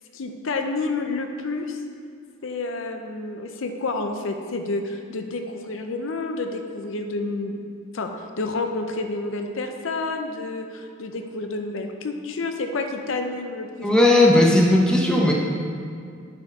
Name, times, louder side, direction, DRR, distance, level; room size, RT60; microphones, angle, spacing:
voice 1, 0.1-1.8 2.4-7.6 7.9-8.1 8.4-13.9, left 3 dB, 65° left, 5 dB, 0.6 m, -29 dB
voice 2, 13.8-15.3, left 1 dB, 5° left, -2 dB, 0.7 m, -16 dB
8.0 x 4.6 x 5.3 m, 2.3 s
head